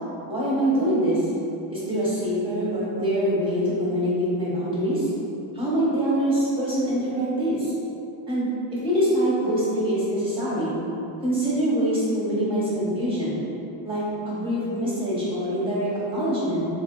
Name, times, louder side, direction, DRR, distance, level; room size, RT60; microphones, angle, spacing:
voice 1, 0.3-1.3 1.7-5.1 5.5-7.7 8.3-10.7 11.2-13.4 13.8-16.7, equal, 10° right, -8 dB, 1.5 m, -24 dB
3.5 x 3.3 x 2.3 m, 2.9 s
cardioid pair, 70°, 50 cm